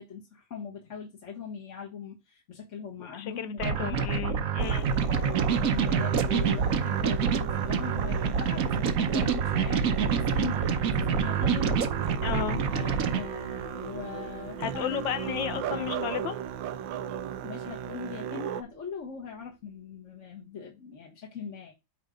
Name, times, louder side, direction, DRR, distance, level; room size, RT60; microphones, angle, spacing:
voice 1, 0.0-4.1 5.1-11.8 12.7-16.0 17.4-21.7, left 6 dB, 40° left, 1.6 m, -40 dB
voice 2, 3.0-5.0 12.2-12.6 14.6-16.4, left 9 dB, 75° left, 1.4 m, -33 dB
sound 1, 3.6-13.2, right 6 dB, 55° right, 1.1 m, -27 dB
Musical instrument, 4.6-18.6, right 9 dB, 80° right, 1.3 m, -37 dB
sound 2, 8.1-19.9, right 2 dB, 30° right, 0.7 m, -46 dB
8.9 x 3.4 x 5.1 m
omnidirectional pair, 2.1 m